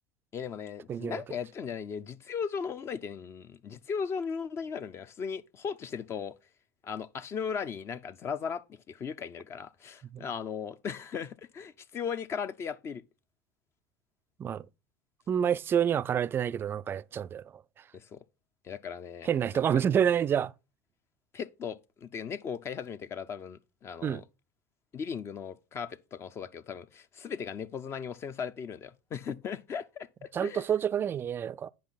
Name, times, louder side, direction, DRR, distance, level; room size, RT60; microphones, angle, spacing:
voice 1, 0.3-6.3 6.8-13.0 17.9-18.2 18.6-19.6 21.3-24.2 24.9-30.6, left 6 dB, 35° left, 0.6 m, -37 dB
voice 2, 0.9-1.2 10.1-10.2 14.4-14.7 15.3-17.6 19.2-20.5 24.0-24.2 30.3-31.7, right 8 dB, 30° right, 0.4 m, -28 dB
10.5 x 5.2 x 4.0 m
hypercardioid pair, 95°, 8 cm